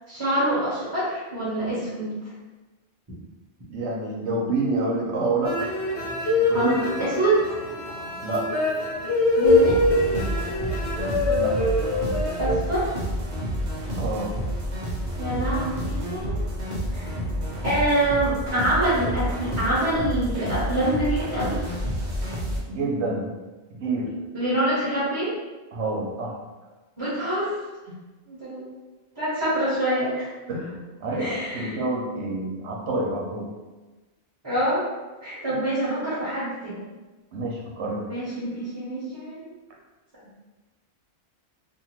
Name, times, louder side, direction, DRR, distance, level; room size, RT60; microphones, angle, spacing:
voice 1, 0.1-2.1 6.4-7.4 9.4-9.8 12.4-12.9 15.2-16.4 16.9-17.1 17.6-21.6 24.3-25.4 27.0-27.6 28.3-28.6 29.1-30.3 31.2-31.8 34.4-34.9 35.2-36.8 38.1-39.5, right 1 dB, 25° right, -11 dB, 0.9 m, -25 dB
voice 2, 3.7-5.5 6.5-6.8 8.2-8.5 11.3-11.5 14.0-14.3 22.6-23.3 23.8-24.1 25.7-26.3 30.5-33.5 37.3-38.1, right 2 dB, 80° right, -2 dB, 1.0 m, -27 dB
sound 1, 5.4-12.6, left 2 dB, 80° left, 0.9 m, -24 dB
sound 2, 9.4-22.6, equal, 45° right, 0.7 m, -29 dB
2.6 x 2.5 x 3.0 m, 1.2 s
omnidirectional pair, 1.1 m